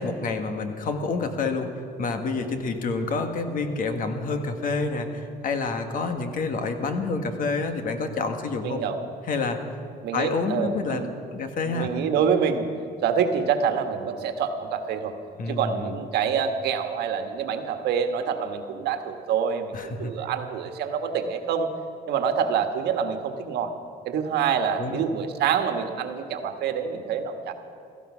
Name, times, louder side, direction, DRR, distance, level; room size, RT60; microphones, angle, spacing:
voice 1, 0.0-8.8 9.3-9.6 10.1-11.1 11.3-11.9 15.4-15.9 19.7-20.1 24.8-25.0, left 3 dB, 55° left, 6 dB, 1.7 m, -28 dB
voice 2, 8.6-9.0 10.0-11.1 11.6-12.7 13.0-15.1 15.5-21.7 22.1-23.7 24.0-27.5, right 7 dB, 75° right, 6 dB, 1.5 m, -26 dB
16.5 x 14.0 x 6.2 m, 2.6 s
cardioid pair, 110°, 17 cm